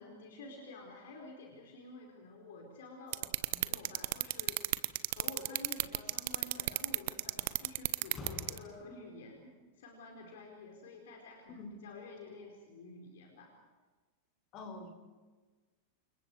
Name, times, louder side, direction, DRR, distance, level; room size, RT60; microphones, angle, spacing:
voice 1, 0.0-4.6 5.1-13.5, left 3 dB, 60° left, 1 dB, 4.6 m, -50 dB
sound 1, 3.1-8.6, right 21 dB, 50° right, 1.0 m, -31 dB
Slam, 6.9-7.0 7.4-9.3, left 3 dB, 20° left, 7.3 m, -49 dB
voice 2, 11.5-11.8 14.5-14.9, left 2 dB, 35° left, 4 dB, 6.1 m, -45 dB
29.5 x 28.5 x 4.9 m, 1.3 s
figure-of-eight pair, 90°, 0 cm